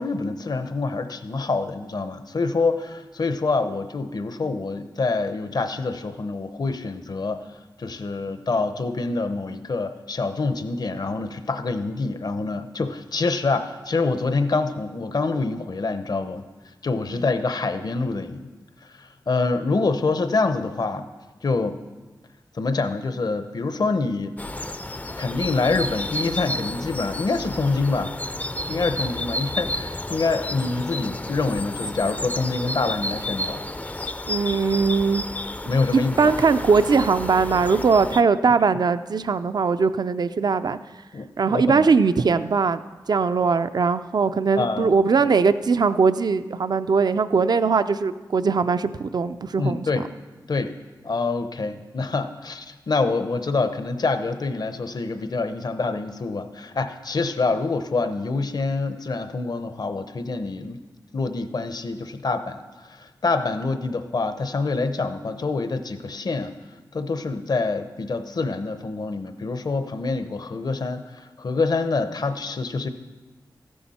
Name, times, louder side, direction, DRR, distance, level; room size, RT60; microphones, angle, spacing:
voice 1, 0.0-7.5 7.8-16.4 16.8-18.5 18.8-21.1 21.4-21.8 22.5-24.4 25.2-28.1 28.7-33.7 35.7-36.3 41.1-41.9 44.6-44.9 49.6-50.1 50.5-50.8 51.0-60.8 61.1-66.5 66.9-72.9, left 3 dB, 60° left, 10 dB, 0.7 m, -26 dB
sound 1, 24.4-38.2, left 1 dB, 20° left, 0.4 m, -31 dB
voice 2, 34.3-35.2 35.9-40.8 41.4-42.8 43.1-49.9, right 5 dB, 60° right, 12 dB, 0.4 m, -20 dB
14.0 x 10.0 x 4.2 m, 1.2 s
cardioid pair, 60°, 8 cm